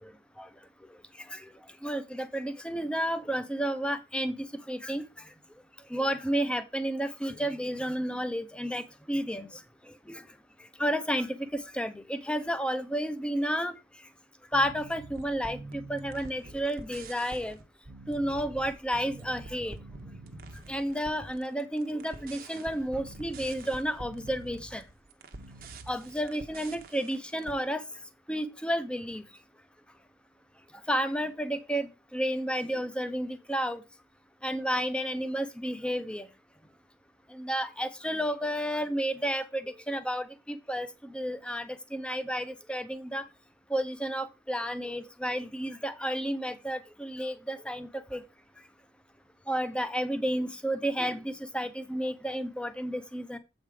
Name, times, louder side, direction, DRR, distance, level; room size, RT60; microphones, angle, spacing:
voice 1, 1.8-5.0 5.9-9.5 10.1-10.2 10.8-13.7 14.5-17.6 18.1-19.8 20.7-24.8 25.9-27.8 28.3-29.0 30.9-33.8 34.4-36.3 37.3-43.2 43.7-48.2 49.5-53.4, equal, 5° left, 11 dB, 0.7 m, -31 dB
sound 1, 14.5-27.6, right 2 dB, 55° right, 0.9 m, -46 dB
7.9 x 5.1 x 4.9 m, 0.26 s
head